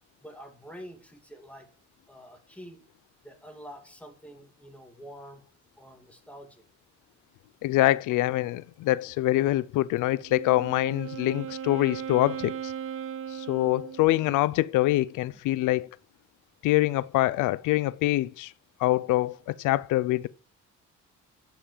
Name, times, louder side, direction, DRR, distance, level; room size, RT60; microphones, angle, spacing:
voice 1, 0.2-1.7 2.1-2.8 3.2-5.4 5.8-6.6, equal, 5° left, 2.6 m, -47 dB
voice 2, 7.6-12.7 13.3-15.9 16.6-18.5 18.8-20.3, left 16 dB, 90° left, 0.6 m, -25 dB
Wind instrument woodwind instrument, 10.1-14.5, right 9 dB, 45° right, 0.5 m, -37 dB
10.0 x 5.8 x 7.3 m
cardioid pair, 90°, 30 cm